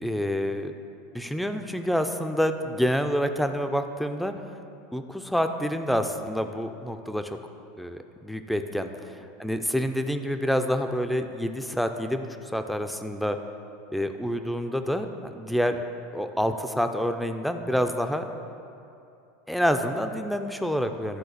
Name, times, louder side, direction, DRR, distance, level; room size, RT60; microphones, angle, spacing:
voice 1, 0.0-0.7 1.1-4.3 4.9-7.4 7.8-13.4 13.9-15.8 16.1-18.3 19.5-21.2, equal, ahead, 7 dB, 0.6 m, -27 dB
11.5 x 3.9 x 6.6 m, 2.7 s
hypercardioid pair, 90°, 0 cm